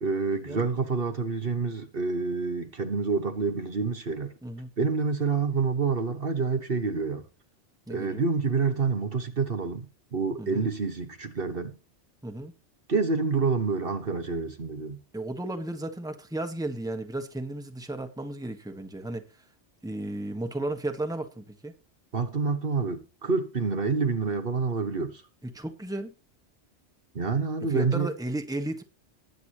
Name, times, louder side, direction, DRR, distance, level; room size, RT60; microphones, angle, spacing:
voice 1, 0.0-4.3 4.8-7.2 7.9-9.9 10.1-11.8 12.9-15.0 22.1-25.2 27.1-28.1, right 4 dB, 55° right, 1.4 m, -27 dB
voice 2, 4.4-4.7 7.9-8.2 10.4-10.7 12.2-12.5 15.1-19.5 19.8-21.7 25.4-26.1 27.6-28.8, right 1 dB, 5° right, 1.4 m, -34 dB
20.5 x 8.2 x 3.0 m
omnidirectional pair, 1.2 m